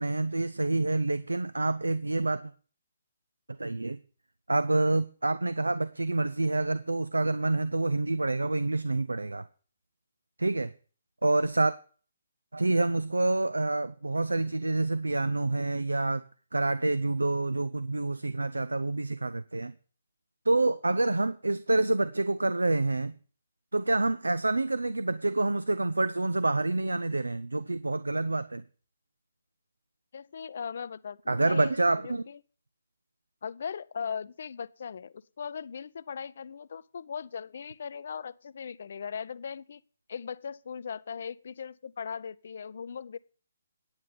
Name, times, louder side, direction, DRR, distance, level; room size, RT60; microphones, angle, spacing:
voice 1, 0.0-2.5 3.6-4.0 4.5-9.4 10.4-10.7 11.2-11.8 12.5-16.2 16.5-19.7 20.5-23.2 23.7-28.6 31.3-32.2, right 2 dB, 75° right, 0.5 m, -27 dB
voice 2, 30.1-31.7 32.0-32.4 33.4-39.8 40.1-43.2, left 6 dB, 50° left, 0.5 m, -39 dB
9.6 x 9.1 x 5.3 m
figure-of-eight pair, 135°, 0 cm